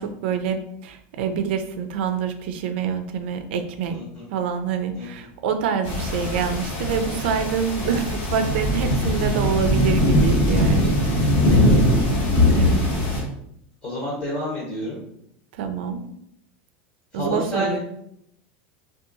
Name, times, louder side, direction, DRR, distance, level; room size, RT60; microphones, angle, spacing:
voice 1, 0.0-4.0 4.3-10.9 12.5-12.9 15.5-16.1 17.1-17.8, right 7 dB, 80° right, 8 dB, 0.4 m, -26 dB
voice 2, 3.9-4.3 4.9-5.1 11.4-12.0 13.8-15.0 17.1-17.8, equal, 30° left, -4 dB, 0.8 m, -29 dB
sound 1, 5.8-13.2, left 1 dB, 60° left, 1.4 m, -20 dB
2.7 x 2.3 x 2.5 m, 0.74 s
supercardioid pair, 140°, 6 cm